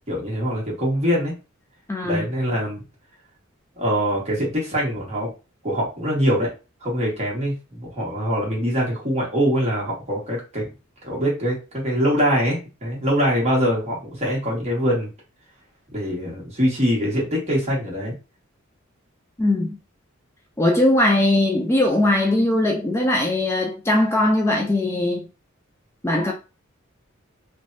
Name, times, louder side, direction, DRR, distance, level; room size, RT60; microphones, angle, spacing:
voice 1, 0.1-1.3 2.0-2.8 3.7-5.3 5.6-6.5 6.8-10.7 11.0-15.1 15.9-18.1, equal, 30° right, 1.3 m, -23 dB
voice 2, 1.9-2.2 19.4-19.8 20.6-25.3 26.0-26.3, left 1 dB, 15° left, 0.4 m, -20 dB
3.2 x 2.2 x 2.5 m
head